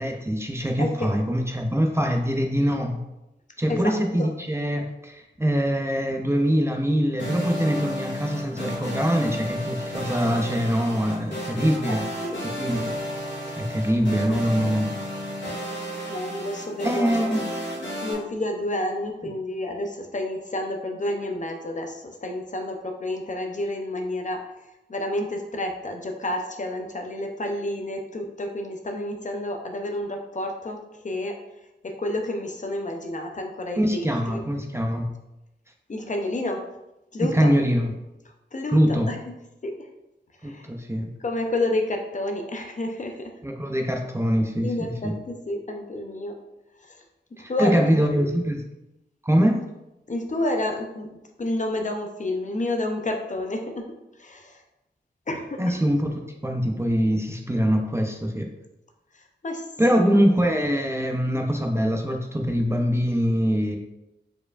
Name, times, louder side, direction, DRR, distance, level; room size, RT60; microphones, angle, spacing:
voice 1, 0.0-3.0 3.6-12.0 12.4-12.9 13.6-14.9 16.8-17.4 33.8-35.1 37.2-37.9 38.7-39.1 40.4-41.1 43.4-45.2 47.4-48.6 49.2-49.6 55.6-58.5 59.8-63.8, equal, 15° right, 2 dB, 0.5 m, -23 dB
voice 2, 0.8-1.1 3.7-4.3 11.9-12.4 14.3-14.7 16.1-17.4 18.0-24.4 24.9-31.3 31.8-34.4 35.9-36.6 37.1-37.5 38.5-38.8 39.1-39.2 39.6-39.7 40.4-40.7 41.2-43.3 44.6-46.4 46.8-47.0 47.5-48.3 50.1-51.1 51.4-53.8 54.2-54.6 55.3-55.8 59.1-59.6 59.9-60.2, left 1 dB, 40° left, 3 dB, 0.6 m, -30 dB
sound 1, 7.2-18.1, equal, 80° left, 1.5 m, -32 dB
4.6 x 4.5 x 2.4 m, 0.92 s
wide cardioid pair, 105°, 19 cm